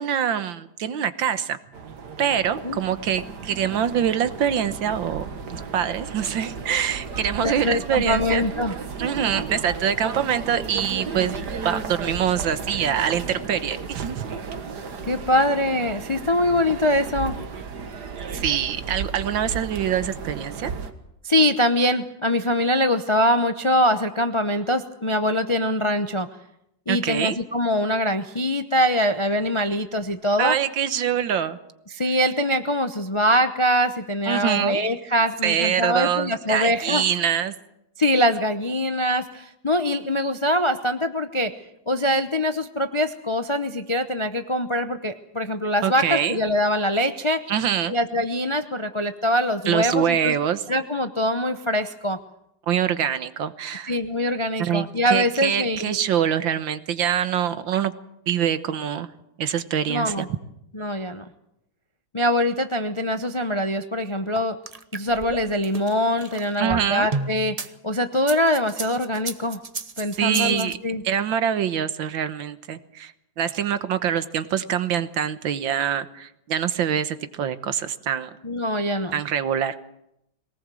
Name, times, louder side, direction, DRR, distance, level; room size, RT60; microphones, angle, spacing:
voice 1, 0.0-1.6 2.2-5.2 5.5-8.5 9.0-11.3 11.7-14.3 18.3-20.7 26.9-27.4 30.4-31.6 34.3-34.8 35.4-37.5 45.8-46.4 47.5-48.0 49.7-50.6 52.7-53.9 54.6-57.9 58.3-59.1 59.4-60.3 66.6-67.1 70.2-70.8 71.0-78.3 79.1-79.8, right 9 dB, 80° right, 12 dB, 1.9 m, -24 dB
sound 1, 1.7-20.9, right 5 dB, 60° right, 2.1 m, -34 dB
voice 2, 7.4-8.7 15.1-17.4 21.2-26.3 26.9-30.6 31.9-37.0 38.0-41.5 41.9-47.4 47.9-50.3 50.7-52.2 53.9-56.0 59.9-60.3 60.7-61.3 62.1-64.6 64.9-67.6 67.8-69.6 70.0-71.0 78.4-79.2, equal, 35° left, 9 dB, 0.4 m, -23 dB
sound 2, 64.4-67.7 68.2-70.7, right 3 dB, 35° right, 0.6 m, -32 dB
22.0 x 18.5 x 7.7 m, 0.80 s
omnidirectional pair, 2.1 m